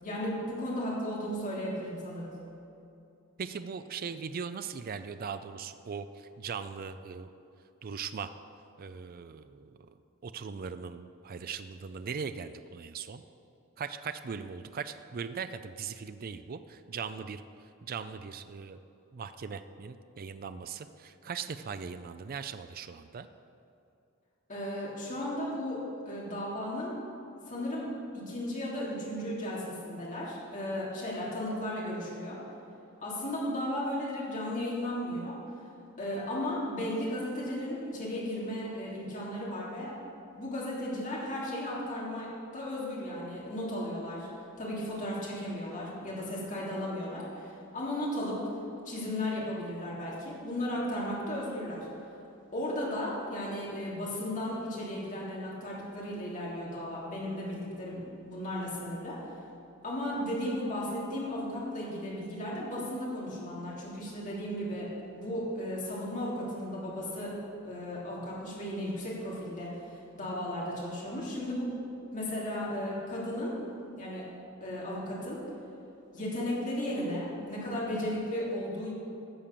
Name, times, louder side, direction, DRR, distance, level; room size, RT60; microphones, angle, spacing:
voice 1, 0.0-2.3 24.5-25.8 26.0-27.0 27.5-27.9 28.1-32.4 33.0-35.3 36.0-39.9 40.3-44.3 44.6-48.4 48.8-51.9 52.5-59.2 59.8-67.4 67.6-71.7 72.1-73.6 74.0-74.3 74.6-75.4 76.1-78.9, left 1 dB, 40° left, -5 dB, 3.3 m, -35 dB
voice 2, 3.4-7.3 7.8-8.3 8.8-9.9 10.2-13.2 13.8-18.8 19.1-23.3, right 6 dB, 45° right, 10 dB, 0.4 m, -39 dB
13.0 x 7.3 x 6.8 m, 2.6 s
head